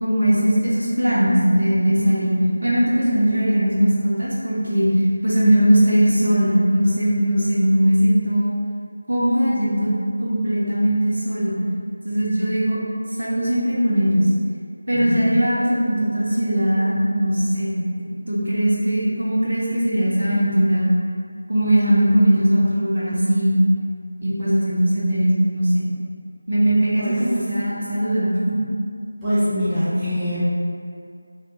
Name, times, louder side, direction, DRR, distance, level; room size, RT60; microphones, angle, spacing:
voice 1, 0.0-2.3 2.6-8.5 9.1-9.9 10.2-11.6 12.0-12.8 13.2-14.3 14.9-17.8 18.3-20.9 21.5-23.6 24.2-25.8 26.5-28.6, equal, 80° right, -7 dB, 0.9 m, -19 dB
voice 2, 1.9-2.5 14.9-15.4 27.0-27.2 29.2-30.4, equal, 5° right, -19 dB, 0.3 m, -24 dB
2.4 x 2.3 x 2.9 m, 2.3 s
figure-of-eight pair, 175°, 0 cm